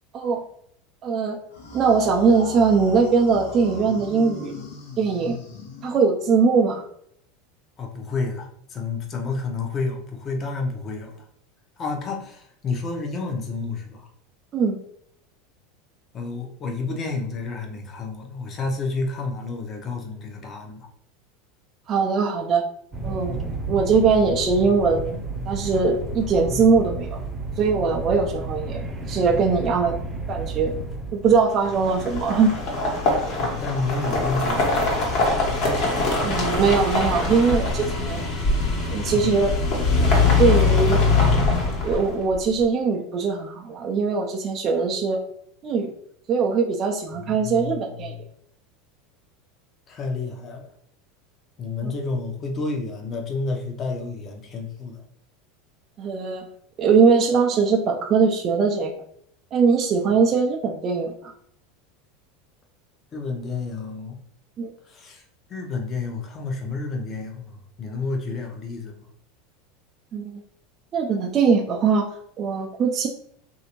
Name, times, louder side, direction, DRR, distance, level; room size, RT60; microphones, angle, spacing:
voice 1, 1.0-1.4 1.7-4.5 5.0-5.4 5.8-6.8 14.5-14.8 21.9-22.7 23.0-23.3 23.7-25.2 25.5-27.2 27.6-28.8 29.1-30.0 30.3-30.7 31.1-32.5 36.2-38.2 38.9-39.5 40.4-41.0 41.8-45.2 45.6-45.9 46.3-48.1 51.8-51.9 56.0-56.5 56.8-58.9 59.5-61.3 64.6-64.7 70.1-70.4 70.9-72.1 72.4-73.1, right 5 dB, 40° right, -1 dB, 0.5 m, -21 dB
sound 1, 1.5-6.3, left 3 dB, 80° left, 0.8 m, -38 dB
voice 2, 7.8-11.2 11.8-14.1 16.1-20.9 33.3-34.9 39.1-39.4 47.2-48.2 49.9-50.7 51.6-55.0 63.1-64.2 64.9-65.2 65.5-69.0, left 3 dB, 35° left, 1 dB, 0.8 m, -30 dB
sound 2, 22.9-31.5, right 2 dB, 20° right, 0.8 m, -32 dB
sound 3, 31.5-42.4, left 3 dB, 60° left, 1.2 m, -22 dB
3.2 x 2.7 x 3.0 m, 0.67 s
hypercardioid pair, 90°, 0 cm